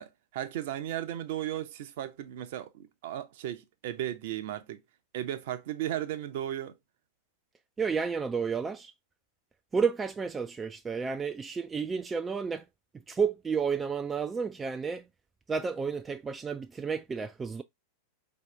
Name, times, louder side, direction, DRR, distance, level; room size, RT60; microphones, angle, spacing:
voice 1, 0.0-4.8 5.1-6.8, right 12 dB, 55° right, 0.6 m, -35 dB
voice 2, 7.8-8.9 9.7-12.6 13.1-15.1 15.5-17.6, right 5 dB, 15° right, 0.3 m, -31 dB
4.8 x 2.8 x 3.1 m
figure-of-eight pair, 90°, 0 cm